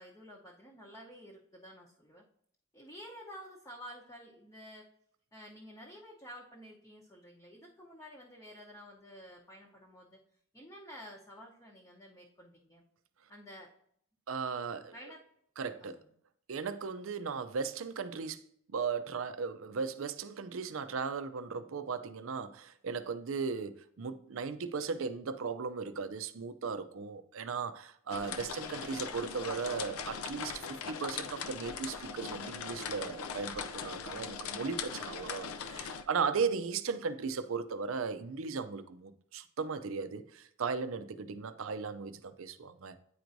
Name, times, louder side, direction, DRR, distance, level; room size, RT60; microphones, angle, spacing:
voice 1, 0.0-2.2 2.7-4.9 5.3-10.2 10.5-12.8 13.3-13.7 14.9-15.2 15.8-16.1, equal, 15° left, 0.8 m, -51 dB
voice 2, 14.3-14.9 15.6-16.0 16.5-18.4 18.7-43.0, right 5 dB, 65° right, 0.5 m, -37 dB
sound 1, 28.1-36.0, left 6 dB, 75° left, 0.5 m, -40 dB
9.3 x 4.6 x 2.6 m
head